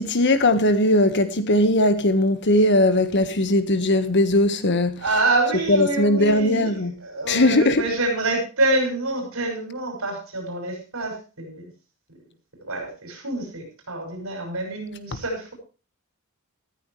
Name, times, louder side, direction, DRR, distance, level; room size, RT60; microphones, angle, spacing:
voice 1, 0.0-5.0 5.7-7.0 7.3-7.8, left 1 dB, 55° left, 1.4 m, -19 dB
voice 2, 5.0-11.7 12.6-15.5, right 2 dB, 75° right, 6.3 m, -26 dB
15.0 x 14.0 x 3.2 m
head